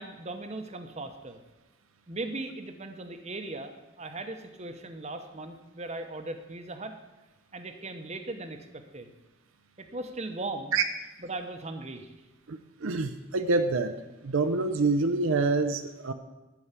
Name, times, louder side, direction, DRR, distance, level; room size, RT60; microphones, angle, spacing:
voice 1, 0.0-1.4 2.1-6.9 7.5-9.1 9.8-10.8 11.2-12.1, right 2 dB, 30° right, 7 dB, 0.8 m, -38 dB
voice 2, 12.5-13.9 14.2-16.1, right 3 dB, 65° right, 8 dB, 0.6 m, -26 dB
13.0 x 4.7 x 8.1 m, 1.1 s
head